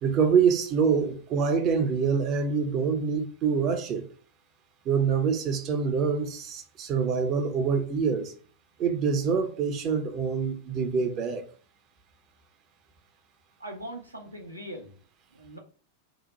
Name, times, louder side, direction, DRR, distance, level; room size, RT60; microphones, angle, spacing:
voice 1, 0.0-4.1 4.9-8.3 8.8-11.4, right 6 dB, 35° right, 0.5 m, -25 dB
voice 2, 13.6-15.0 15.3-15.6, right 1 dB, 85° right, 0.7 m, -40 dB
2.7 x 2.1 x 4.0 m
figure-of-eight pair, 90°, 0 cm